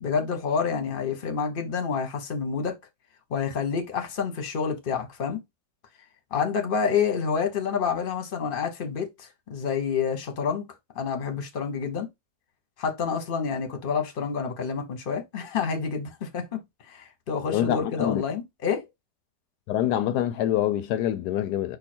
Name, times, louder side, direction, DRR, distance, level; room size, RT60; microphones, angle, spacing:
voice 1, 0.0-2.8 3.3-5.4 6.3-10.7 10.9-12.1 12.8-16.6 16.9-18.9, left 6 dB, 40° left, 1.1 m, -28 dB
voice 2, 17.5-18.2 19.7-21.8, left 11 dB, 80° left, 1.1 m, -25 dB
4.8 x 2.6 x 4.3 m
omnidirectional pair, 1.8 m